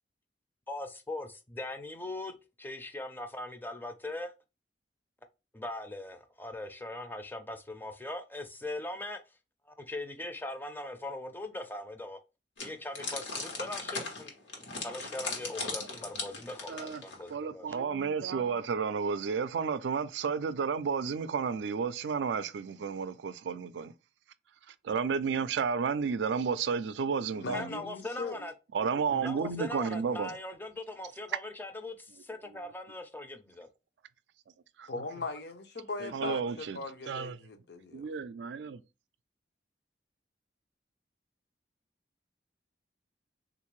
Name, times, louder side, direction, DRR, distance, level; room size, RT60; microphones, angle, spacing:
voice 1, 0.7-4.3 5.5-9.2 9.7-12.2 12.6-14.3 14.8-17.8 27.5-28.5 29.2-33.7, left 2 dB, 10° left, 0.5 m, -40 dB
sound 1, 12.6-17.3, left 3 dB, 90° left, 1.2 m, -38 dB
voice 2, 16.7-17.0 17.3-23.9 24.7-27.8 28.7-30.3 34.8-34.9 36.0-36.8 37.1-37.4 37.9-38.8, right 6 dB, 75° right, 0.4 m, -32 dB
voice 3, 27.3-28.4 29.1-29.2 34.9-38.1, left 3 dB, 65° left, 0.6 m, -39 dB
3.6 x 2.5 x 3.1 m
head